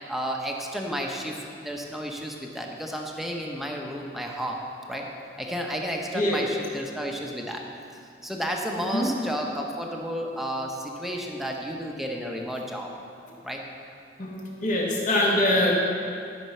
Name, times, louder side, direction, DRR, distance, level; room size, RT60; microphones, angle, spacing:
voice 1, 0.1-1.4 1.6-4.6 4.9-5.1 5.4-7.6 8.2-12.9 13.4-13.6, equal, ahead, 0 dB, 1.0 m, -32 dB
voice 2, 6.1-6.5 8.8-9.1 14.2-14.3 14.6-15.7, left 1 dB, 45° left, -4 dB, 1.9 m, -23 dB
12.5 x 6.1 x 5.6 m, 2.4 s
head